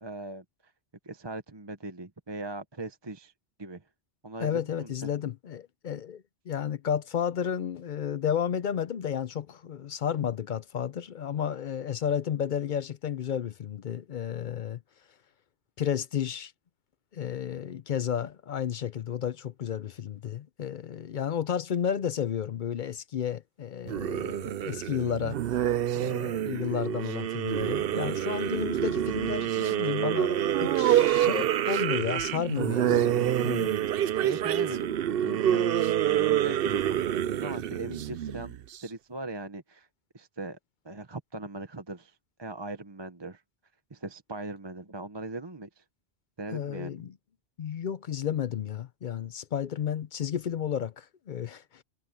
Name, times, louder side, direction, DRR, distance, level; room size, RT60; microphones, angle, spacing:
voice 1, 0.0-0.4 1.0-3.3 3.6-3.8 4.2-4.9 34.1-35.7 36.0-37.1 37.4-39.9 40.1-40.6 40.8-43.4 43.9-45.8 46.4-46.9, right 2 dB, 25° right, 1.0 m, -39 dB
voice 2, 4.4-14.8 15.8-16.5 17.1-25.4 25.9-33.8 46.5-47.1 47.6-51.8, left 8 dB, 55° left, 0.6 m, -32 dB
sound 1, 23.9-38.8, right 11 dB, 65° right, 0.8 m, -27 dB
omnidirectional pair, 1.1 m